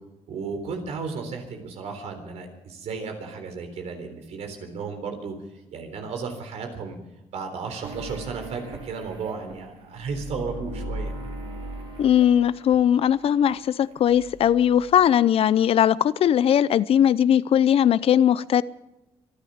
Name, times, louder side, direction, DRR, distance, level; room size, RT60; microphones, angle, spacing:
voice 1, 0.3-5.3 5.7-7.0 7.3-11.1, right 5 dB, 85° right, 6 dB, 3.8 m, -34 dB
sound 1, 7.8-13.5 13.8-15.0, right 1 dB, 60° right, 3.8 m, -38 dB
voice 2, 12.0-18.6, left 10 dB, 60° left, 18 dB, 0.6 m, -19 dB
25.5 x 11.5 x 5.0 m, 0.92 s
cardioid pair, 120°, 11 cm